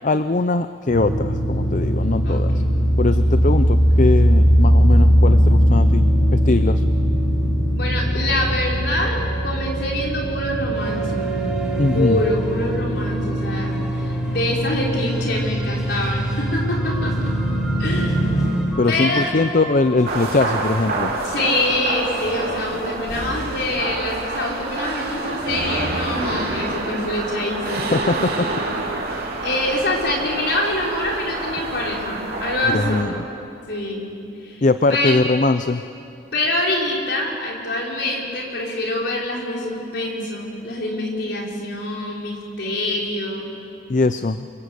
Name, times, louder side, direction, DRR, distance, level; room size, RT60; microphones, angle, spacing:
voice 1, 0.0-2.6 3.0-6.0 6.3-6.8 11.8-12.2 18.8-21.1 27.9-28.6 32.6-33.2 34.6-35.8 43.9-44.5, left 3 dB, 40° left, 11 dB, 0.5 m, -21 dB
sound 1, 0.9-18.5, equal, 85° left, 5.7 m, -20 dB
voice 2, 2.2-2.7 7.7-11.3 11.9-17.3 17.8-18.3 18.9-19.3 21.2-27.9 29.4-33.0 33.7-34.1 34.4-34.6 34.9-35.1 36.3-43.5, left 1 dB, 60° left, -2 dB, 5.3 m, -25 dB
sound 2, 10.7-23.2, equal, 5° right, 2.8 m, -37 dB
sound 3, 20.0-33.0, right 2 dB, 50° right, 3.7 m, -27 dB
28.0 x 25.0 x 8.2 m, 2.8 s
head